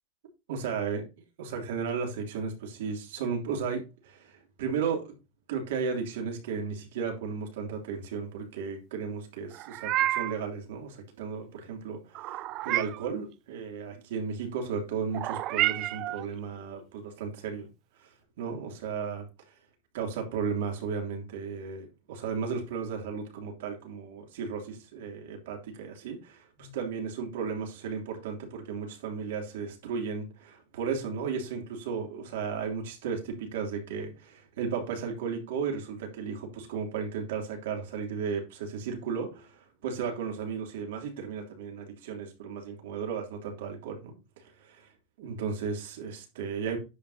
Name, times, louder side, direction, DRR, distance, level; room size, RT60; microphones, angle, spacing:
voice 1, 0.5-1.0 1.4-5.2 5.5-12.4 12.6-17.7 18.0-18.1 18.4-19.3 19.9-44.4 45.2-46.8, right 6 dB, 85° right, 2.9 m, -34 dB
Meow, 9.5-10.4 12.1-13.1 15.1-16.2, right 15 dB, 50° right, 0.4 m, -30 dB
9.9 x 6.0 x 2.8 m
supercardioid pair, 130°, 0 cm